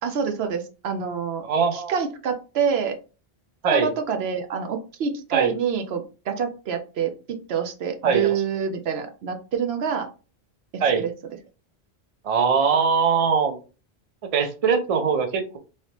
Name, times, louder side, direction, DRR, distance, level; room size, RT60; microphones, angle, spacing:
voice 1, 0.0-1.4 1.7-3.0 3.7-10.1 10.7-11.1, right 7 dB, 75° right, 6 dB, 0.8 m, -27 dB
voice 2, 1.4-1.9 3.6-3.9 5.3-5.5 8.0-8.3 10.8-11.0 12.2-13.6 14.3-15.6, right 6 dB, 45° right, 6 dB, 0.5 m, -21 dB
3.2 x 2.8 x 2.9 m, 0.34 s
omnidirectional pair, 1.1 m